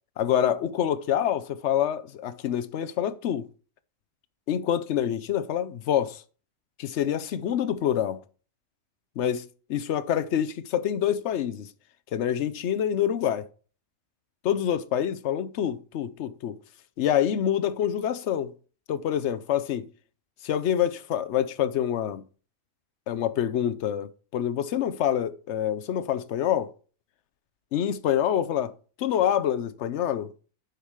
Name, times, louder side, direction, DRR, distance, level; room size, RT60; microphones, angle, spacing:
voice 1, 0.2-3.5 4.5-6.2 6.8-8.2 9.2-11.7 12.1-13.4 14.4-16.6 17.0-18.5 18.9-19.9 20.4-22.3 23.1-26.7 27.7-28.7 29.0-30.3, left 10 dB, 65° left, 0.9 m, -26 dB
6.7 x 6.0 x 4.8 m
omnidirectional pair, 1.4 m